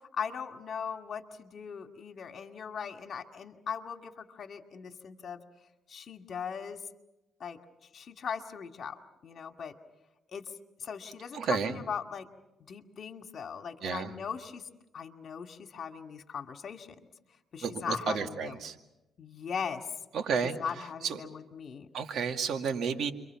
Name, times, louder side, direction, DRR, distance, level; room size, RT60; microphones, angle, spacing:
voice 1, 0.1-5.4 5.9-6.8 7.4-7.6 7.9-9.7 10.3-10.5 10.8-12.3 12.7-14.7 14.9-16.9 17.5-18.6 19.2-19.9 20.6-21.9, left 6 dB, 55° left, 6 dB, 2.2 m, -39 dB
voice 2, 11.3-11.8 13.8-14.1 17.6-18.8 20.1-20.6 21.0-21.2 21.9-23.1, right 6 dB, 70° right, 5 dB, 2.2 m, -31 dB
30.0 x 24.0 x 5.9 m, 0.95 s
cardioid pair, 90°, 0 cm